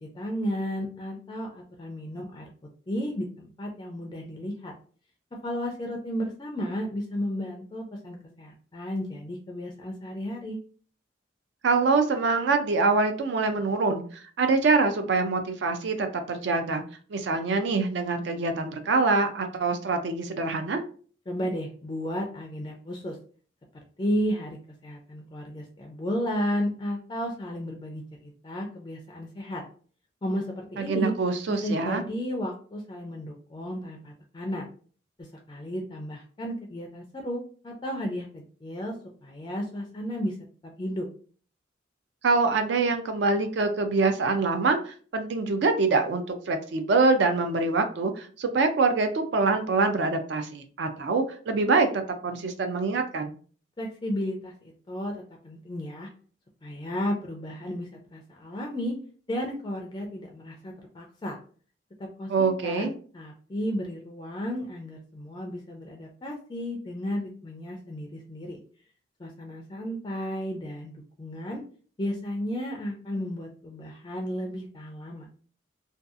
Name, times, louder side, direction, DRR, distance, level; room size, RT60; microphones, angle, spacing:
voice 1, 0.0-2.5 2.9-4.7 5.4-10.6 21.3-23.2 24.0-24.6 24.8-29.6 30.2-31.1 31.6-34.7 35.2-39.0 39.2-40.4 40.6-41.1 53.8-56.1 56.6-58.9 59.3-61.4 62.0-68.6 69.2-70.9 71.2-71.6 72.0-75.3, equal, 25° left, 1 dB, 0.3 m, -33 dB
voice 2, 11.6-16.8 17.1-20.8 30.8-32.0 42.2-53.3 62.3-62.9, right 3 dB, 60° right, 7 dB, 0.4 m, -25 dB
2.6 x 2.3 x 2.4 m, 0.42 s
head